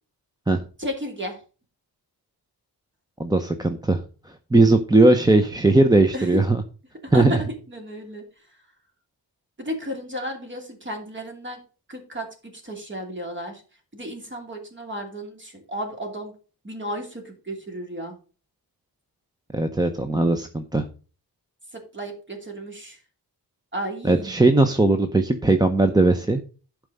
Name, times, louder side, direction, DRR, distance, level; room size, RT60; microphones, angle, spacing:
voice 1, 0.8-1.4 6.1-6.4 7.0-8.3 9.6-11.6 11.9-13.6 13.9-16.3 16.6-18.2 21.7-23.0 23.7-24.4, equal, 30° right, 3 dB, 2.7 m, -33 dB
voice 2, 3.2-4.0 4.5-6.6 7.1-7.4 19.5-20.8 24.0-26.4, right 2 dB, 10° right, 8 dB, 0.7 m, -18 dB
11.5 x 4.8 x 5.4 m, 0.36 s
wide cardioid pair, 145°, 41 cm